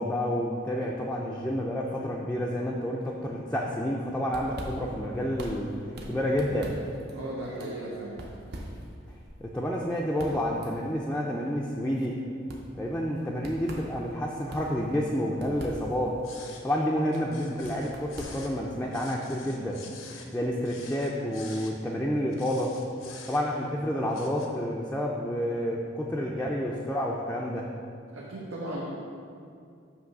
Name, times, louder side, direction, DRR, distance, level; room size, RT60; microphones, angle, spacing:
voice 1, 0.0-5.7 6.1-6.8 9.4-12.2 12.7-16.2 16.6-19.8 20.3-22.7 23.3-27.7, equal, 5° left, -4 dB, 0.4 m, -29 dB
sound 1, 4.0-18.9, equal, 50° right, 0.7 m, -44 dB
voice 2, 7.1-8.2 28.1-28.8, right 1 dB, 90° right, -5 dB, 0.9 m, -36 dB
sound 2, 16.2-16.6 17.1-18.6 18.9-20.3 20.6-21.7 22.3-23.7 24.1-24.5, left 5 dB, 85° left, 0.8 m, -47 dB
7.5 x 3.1 x 6.0 m, 2.4 s
head